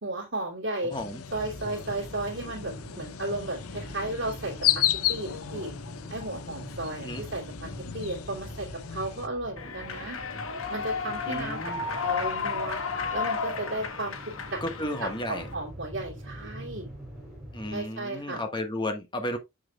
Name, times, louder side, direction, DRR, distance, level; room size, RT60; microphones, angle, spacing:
voice 1, 0.0-0.9 1.3-4.5 5.1-5.7 6.1-7.5 7.9-10.2 10.7-11.7 12.0-12.8 13.1-14.6 15.0-16.9 17.7-18.4, right 2 dB, 60° right, 2.6 m, -34 dB
voice 2, 0.8-1.2 7.0-7.2 11.3-11.8 14.6-15.5 17.5-19.4, left 1 dB, 20° left, 1.3 m, -33 dB
sound 1, 0.9-9.3, left 12 dB, 90° left, 0.6 m, -33 dB
sound 2, 1.3-17.8, equal, 5° right, 4.4 m, -44 dB
Human voice / Clapping / Cheering, 9.6-15.5, left 5 dB, 75° left, 1.1 m, -33 dB
8.1 x 6.6 x 2.3 m
head